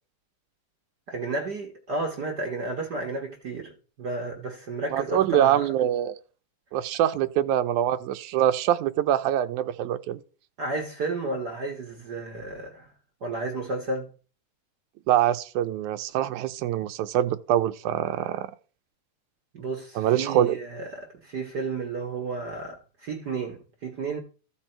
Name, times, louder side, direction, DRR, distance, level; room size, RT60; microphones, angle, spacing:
voice 1, 1.1-5.6 10.6-12.9 13.2-14.1 19.5-24.2, right 3 dB, 60° right, 1.0 m, -32 dB
voice 2, 4.9-6.2 6.7-10.2 15.1-18.5 20.0-20.6, right 11 dB, 80° right, 2.0 m, -24 dB
13.5 x 5.3 x 4.4 m
omnidirectional pair, 3.6 m